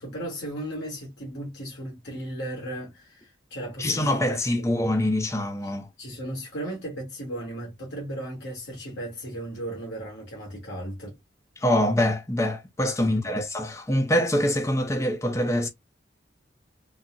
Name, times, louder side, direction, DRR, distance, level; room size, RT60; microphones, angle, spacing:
voice 1, 0.0-4.7 5.6-5.7 6.0-11.2 13.0-13.4, right 1 dB, 65° left, 1.4 m, -36 dB
voice 2, 3.8-5.9 11.6-15.7, left 1 dB, 15° left, 0.5 m, -24 dB
3.9 x 2.0 x 2.3 m
head